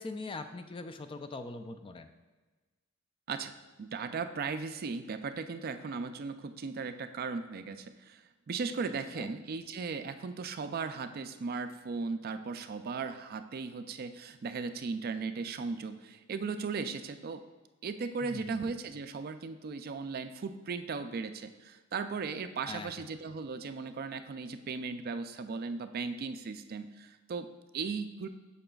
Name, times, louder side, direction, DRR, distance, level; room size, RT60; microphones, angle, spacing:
voice 1, 0.0-2.1 9.2-9.3 18.2-18.6 22.7-22.9, left 3 dB, 25° left, 8 dB, 0.4 m, -42 dB
voice 2, 3.3-17.4 17.8-28.3, right 4 dB, 45° right, 9 dB, 0.4 m, -37 dB
8.8 x 6.6 x 2.3 m, 1.2 s
head